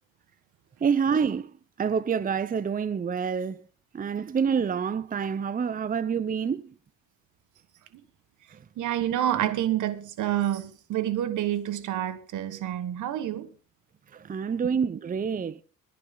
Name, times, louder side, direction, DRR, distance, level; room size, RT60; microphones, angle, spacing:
voice 1, 0.8-1.5 1.8-3.6 3.9-6.6 8.5-8.6 14.1-15.6, right 6 dB, 30° right, 0.6 m, -27 dB
voice 2, 8.8-13.5, right 12 dB, 80° right, 1.6 m, -28 dB
22.0 x 9.4 x 3.9 m
cardioid pair, 90°, 30 cm